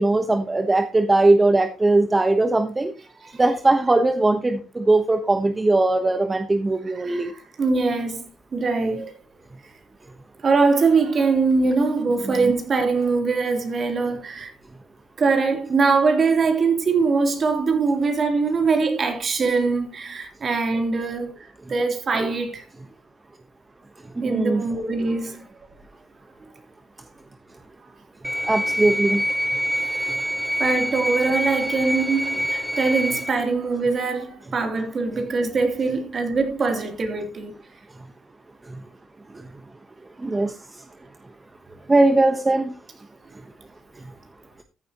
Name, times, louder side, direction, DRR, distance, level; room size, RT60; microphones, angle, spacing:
voice 1, 0.0-2.9 3.4-7.3 12.4-12.5 24.2-24.6 28.5-29.2 38.7-38.8 40.2-40.5 41.9-42.7, right 2 dB, 20° right, 1.2 m, -20 dB
voice 2, 6.9-9.2 10.4-14.5 15.2-22.7 24.2-25.4 29.9-30.1 30.6-37.6, right 4 dB, 45° right, 3.4 m, -22 dB
sound 1, 28.2-33.3, equal, ahead, 0.8 m, -25 dB
14.5 x 9.9 x 3.0 m
cardioid pair, 90°, 0 cm